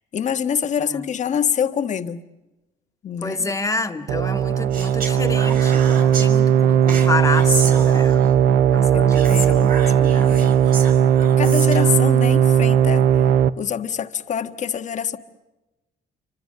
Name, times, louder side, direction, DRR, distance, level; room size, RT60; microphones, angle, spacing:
voice 1, 0.1-2.2 3.0-3.5 8.9-9.7 10.3-10.5 11.4-13.1 13.6-15.2, left 8 dB, 45° left, 1.6 m, -25 dB
voice 2, 3.2-8.2 8.7-10.4, left 3 dB, 20° left, 1.9 m, -28 dB
sound 1, 4.1-13.5, right 9 dB, 75° right, 1.0 m, -17 dB
Speech, 4.7-6.3 6.9-8.3 9.1-12.0, right 5 dB, 60° right, 5.7 m, -32 dB
29.0 x 25.0 x 6.6 m
cardioid pair, 110°, 17 cm